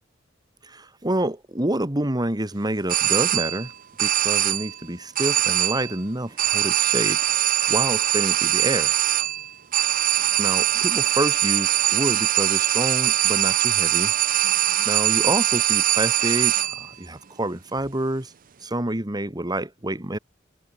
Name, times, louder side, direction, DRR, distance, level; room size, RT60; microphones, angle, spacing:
voice 1, 0.6-3.7 4.0-7.2 7.7-8.9 10.4-14.1 14.8-18.3 18.6-20.2, right 1 dB, 20° right, 2.1 m, -28 dB
sound 1, 2.9-3.7 4.0-4.8 5.2-6.0 6.4-16.9, right 12 dB, 45° right, 0.6 m, -22 dB
head